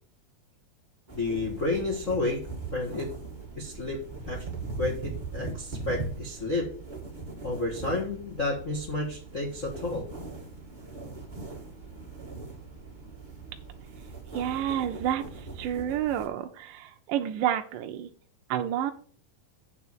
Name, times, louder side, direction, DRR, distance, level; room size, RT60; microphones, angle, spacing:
voice 1, 1.1-2.4 2.7-3.1 3.6-4.0 4.3-4.4 4.8-6.7 7.4-10.1, left 2 dB, 80° left, 0 dB, 0.7 m, -31 dB
sound 1, 1.1-16.3, right 3 dB, 30° right, 0.8 m, -40 dB
voice 2, 14.3-15.2 15.6-18.1 18.5-18.9, right 10 dB, 75° right, 5 dB, 2.1 m, -29 dB
8.2 x 4.7 x 7.4 m, 0.44 s
omnidirectional pair, 4.3 m